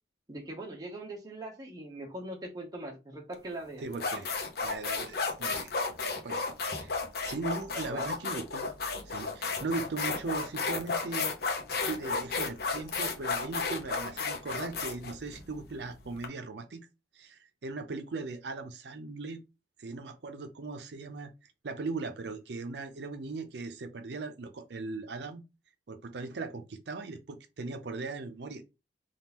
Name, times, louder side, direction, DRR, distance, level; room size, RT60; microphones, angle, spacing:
voice 1, 0.3-3.8 7.7-8.1, right 1 dB, 20° right, 0.7 m, -41 dB
sound 1, 3.3-3.5 3.9-16.3, left 4 dB, 60° left, 0.7 m, -33 dB
voice 2, 3.8-4.3 4.6-5.7 6.0-6.5 6.8-7.0 7.2-8.7 9.0-11.3 11.7-16.9 17.1-19.4 19.8-21.3 21.6-25.4 25.9-28.6, right 3 dB, 70° right, 0.5 m, -39 dB
3.5 x 2.3 x 2.9 m
head